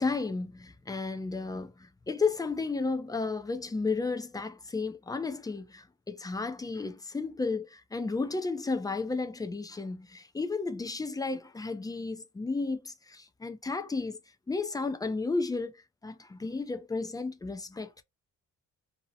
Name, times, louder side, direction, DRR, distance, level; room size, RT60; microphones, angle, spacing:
voice 1, 0.0-14.2 14.5-18.0, left 3 dB, 15° left, 0.3 m, -33 dB
2.7 x 2.0 x 2.7 m
cardioid pair, 90°, 30 cm